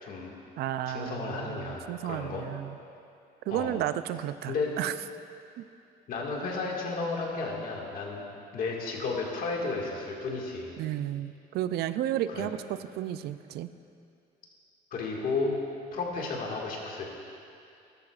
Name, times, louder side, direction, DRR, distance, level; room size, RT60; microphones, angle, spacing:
voice 1, 0.0-0.3 0.9-2.4 3.5-3.7 4.5-4.7 6.1-8.2 8.5-10.7 12.3-12.5 14.9-15.5 15.9-17.1, left 3 dB, 60° left, -1 dB, 1.9 m, -33 dB
voice 2, 0.6-2.8 3.5-4.9 5.6-5.7 10.8-13.7, right 12 dB, 70° right, 13 dB, 0.4 m, -33 dB
13.5 x 12.5 x 2.4 m, 2.5 s
cardioid pair, 110°, 17 cm